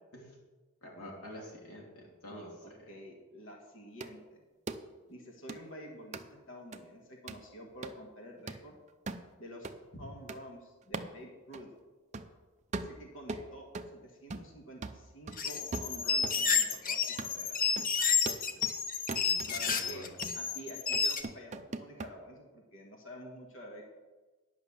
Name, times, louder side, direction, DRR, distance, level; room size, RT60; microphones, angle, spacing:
voice 1, 0.8-2.8 9.9-10.0 19.2-19.6 19.8-20.1, equal, 90° left, -2 dB, 3.1 m, -47 dB
voice 2, 2.4-4.4 5.1-8.8 9.4-11.7 12.7-17.6 19.4-20.1 20.3-23.8, equal, 60° left, 0 dB, 1.6 m, -49 dB
sound 1, 4.0-4.1 4.7-4.8 5.5-5.6 6.1-6.3 6.7-6.8 7.3-7.5 7.8-8.0 8.5-8.6 9.1-9.3 9.6-9.8 10.3-10.4 10.9-11.2 11.5-11.6 12.1-12.3 12.7-13.9 14.3-14.6 14.8-16.4 16.7-16.8 17.2-17.4 17.8-17.9 18.3-18.8 19.1-19.8 20.2-20.4 20.9-22.1, right 3 dB, 30° right, 0.5 m, -40 dB
sound 2, 15.3-21.2, left 6 dB, 40° left, 0.7 m, -30 dB
10.5 x 5.9 x 7.1 m, 1.3 s
head